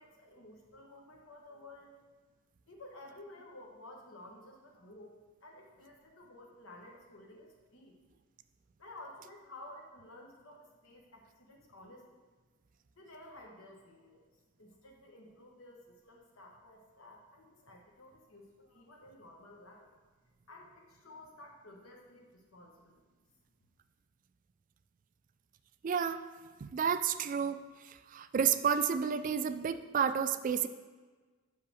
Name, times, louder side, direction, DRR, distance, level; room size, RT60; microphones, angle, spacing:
voice 1, 0.0-2.0 2.7-5.1 5.4-8.0 8.8-12.2 13.0-14.2 14.6-19.9 20.5-23.0, left 1 dB, 85° left, 0 dB, 1.2 m, -53 dB
voice 2, 25.8-26.2 26.6-27.6 28.1-30.7, right 7 dB, 40° right, 11 dB, 0.3 m, -30 dB
5.7 x 5.7 x 6.3 m, 1.4 s
head